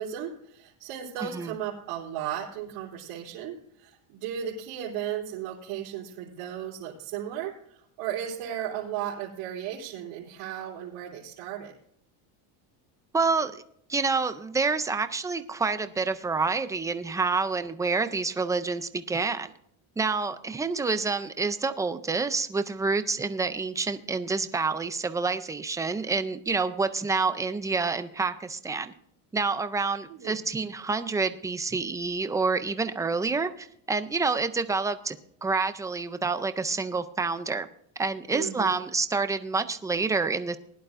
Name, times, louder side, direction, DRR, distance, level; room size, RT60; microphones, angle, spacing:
voice 1, 0.0-11.7 30.1-30.4 38.3-38.8, right 10 dB, 80° right, -8 dB, 3.5 m, -35 dB
voice 2, 1.2-1.5 13.1-13.6 13.9-19.5 20.0-28.9 29.3-35.2 35.4-37.7 38.0-40.6, right 4 dB, 10° right, 10 dB, 0.3 m, -28 dB
20.0 x 11.0 x 2.5 m, 0.66 s
cardioid pair, 145°, 47 cm